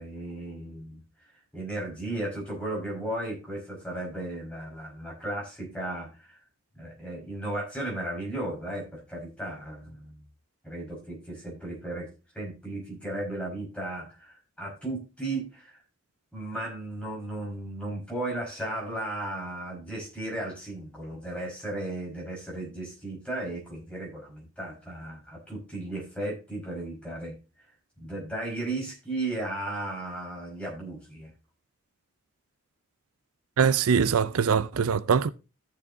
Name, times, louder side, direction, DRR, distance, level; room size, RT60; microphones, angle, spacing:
voice 1, 0.0-6.4 6.7-10.2 10.6-12.1 12.3-15.8 16.3-27.4 28.0-31.3, right 1 dB, 5° left, 5.1 m, -35 dB
voice 2, 33.6-35.3, right 6 dB, 90° right, 0.5 m, -23 dB
14.5 x 6.9 x 2.7 m
head